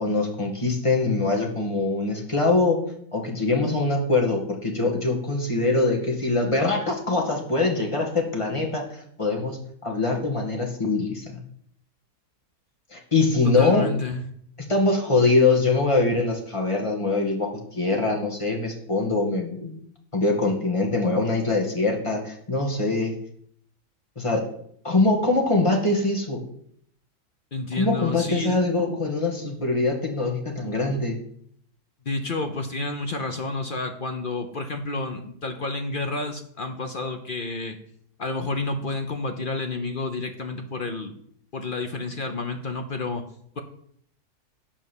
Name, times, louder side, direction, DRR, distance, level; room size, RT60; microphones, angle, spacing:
voice 1, 0.0-2.8 3.1-11.4 12.9-13.9 14.7-19.7 20.1-23.1 24.2-24.4 24.8-26.4 27.8-31.2, left 3 dB, 20° left, 1 dB, 1.8 m, -23 dB
voice 2, 13.4-14.2 27.5-28.6 32.0-37.8 38.2-41.1 41.5-43.3, left 3 dB, 45° left, 5 dB, 0.8 m, -30 dB
8.8 x 5.4 x 7.1 m, 0.66 s
omnidirectional pair, 1.7 m